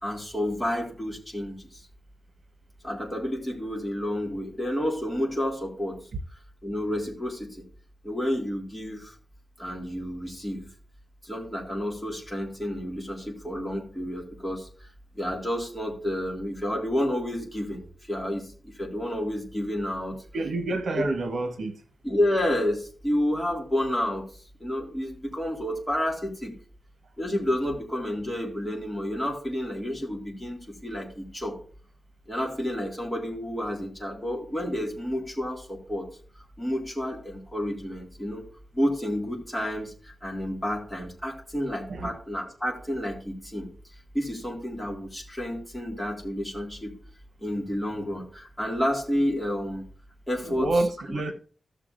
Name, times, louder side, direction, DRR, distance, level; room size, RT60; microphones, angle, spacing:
voice 1, 0.0-1.7 2.8-6.0 6.6-7.6 8.0-9.1 9.6-10.6 11.2-14.7 15.1-17.8 18.1-20.2 20.7-21.0 22.0-24.2 24.6-26.5 27.2-31.6 32.3-36.1 36.6-38.4 38.7-39.9 40.2-43.7 44.1-46.9 47.4-49.9 50.3-50.7, left 1 dB, 10° left, 2.2 m, -30 dB
voice 2, 20.3-21.7 41.9-42.1 50.4-51.3, right 2 dB, 80° right, 1.0 m, -28 dB
15.0 x 6.6 x 2.5 m
wide cardioid pair, 170°, 0 cm